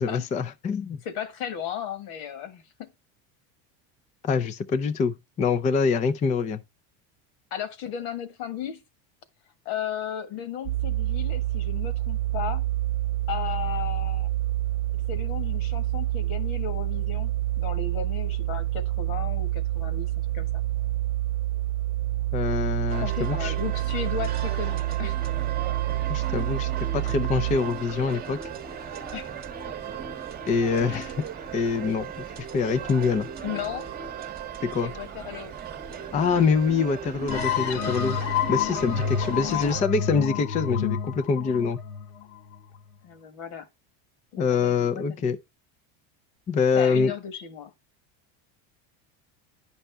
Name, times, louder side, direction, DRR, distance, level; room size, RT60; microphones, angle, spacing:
voice 1, 0.0-1.0 4.2-6.6 22.3-23.5 26.1-28.4 30.5-31.1 31.5-32.1 32.5-33.3 34.7-34.9 36.1-38.2 38.5-41.8 44.4-45.4 46.5-47.1, left 5 dB, 20° left, 0.4 m, -25 dB
voice 2, 1.0-2.9 7.5-8.8 9.7-12.6 13.3-14.3 15.1-20.5 23.0-25.3 29.1-29.3 30.9-31.2 33.4-33.9 34.8-35.5 39.4-39.7 43.0-43.7 44.3-45.4 46.8-47.7, left 9 dB, 70° left, 1.6 m, -35 dB
sound 1, 10.7-27.6, right 15 dB, 75° right, 0.5 m, -28 dB
sound 2, 22.9-39.8, right 7 dB, 20° right, 1.0 m, -37 dB
sound 3, 37.3-42.8, left 8 dB, 90° left, 1.2 m, -29 dB
10.0 x 5.5 x 3.4 m
cardioid pair, 145°, 42 cm